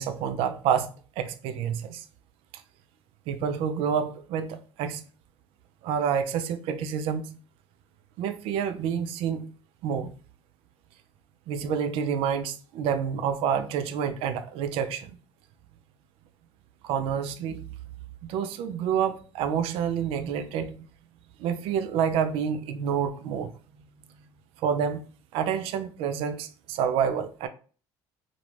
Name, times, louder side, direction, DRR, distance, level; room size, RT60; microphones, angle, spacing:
voice 1, 0.0-2.0 3.3-5.0 5.8-7.4 8.2-9.5 9.8-10.1 11.5-15.1 16.8-17.7 18.2-20.8 21.4-23.5 24.6-25.0 25.3-27.5, right 7 dB, 70° right, 0.3 m, -28 dB
2.5 x 2.1 x 3.1 m
supercardioid pair, 90°, 10 cm